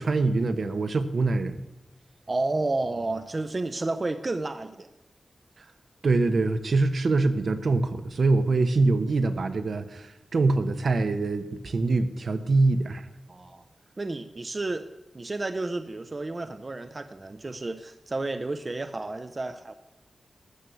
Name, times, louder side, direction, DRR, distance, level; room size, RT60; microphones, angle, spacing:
voice 1, 0.0-1.6 5.6-5.7 6.0-13.1, right 3 dB, 65° right, 9 dB, 0.9 m, -24 dB
voice 2, 2.3-4.9 13.3-13.6 14.0-14.9 15.1-19.7, right 2 dB, 35° right, 9 dB, 0.6 m, -31 dB
13.0 x 7.0 x 7.7 m, 0.96 s
wide cardioid pair, 120°, 0 cm